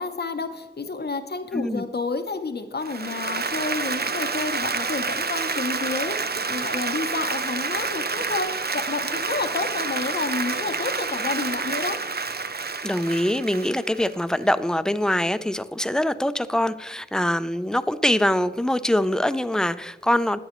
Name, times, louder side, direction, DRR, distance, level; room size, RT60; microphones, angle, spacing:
voice 1, 0.0-12.0, left 3 dB, 60° left, 8 dB, 0.7 m, -30 dB
voice 2, 1.5-1.8 12.8-20.4, left 1 dB, 5° left, 13 dB, 0.4 m, -23 dB
Applause, 2.8-14.5, right 4 dB, 60° right, 0.5 m, -28 dB
10.5 x 9.3 x 3.0 m, 1.1 s
wide cardioid pair, 50°, 19 cm